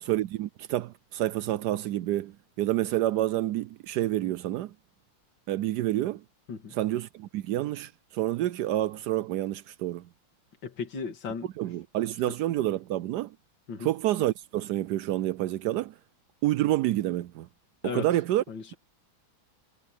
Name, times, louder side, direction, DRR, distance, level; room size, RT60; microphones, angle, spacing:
voice 1, 0.0-4.7 5.5-6.2 6.7-10.1 11.6-13.3 13.8-15.9 16.4-17.5 17.9-18.4, right 14 dB, 80° right, 0.9 m, -28 dB
voice 2, 10.6-11.5 13.7-13.9 17.8-18.1 18.5-18.7, left 5 dB, 60° left, 3.0 m, -35 dB
omnidirectional pair, 2.3 m